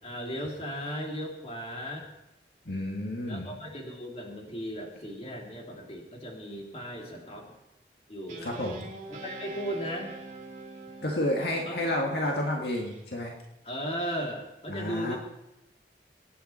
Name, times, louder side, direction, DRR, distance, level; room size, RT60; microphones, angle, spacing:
voice 1, 0.0-2.1 3.3-7.5 8.1-8.5 9.1-10.1 11.6-11.8 13.6-15.2, equal, 35° left, -1 dB, 2.9 m, -36 dB
voice 2, 2.7-3.5 8.4-8.9 11.0-13.3 14.7-15.2, left 1 dB, 65° left, 0 dB, 1.8 m, -30 dB
Guitar, 8.3-13.0, right 2 dB, 45° right, 3.1 m, -44 dB
24.5 x 9.4 x 4.4 m, 0.89 s
head